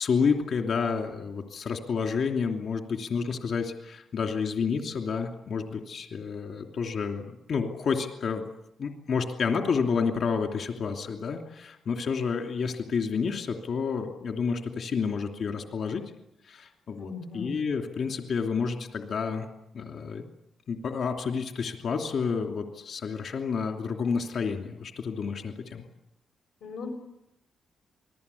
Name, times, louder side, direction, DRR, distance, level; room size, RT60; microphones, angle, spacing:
voice 1, 0.0-8.5 8.8-16.0 16.4-19.5 19.7-20.2 20.7-25.9, left 5 dB, 55° left, 3 dB, 2.9 m, -30 dB
voice 2, 17.0-17.5 26.6-26.9, left 4 dB, 90° left, 4 dB, 6.8 m, -37 dB
28.0 x 20.5 x 8.5 m, 0.84 s
wide cardioid pair, 165°, 0 cm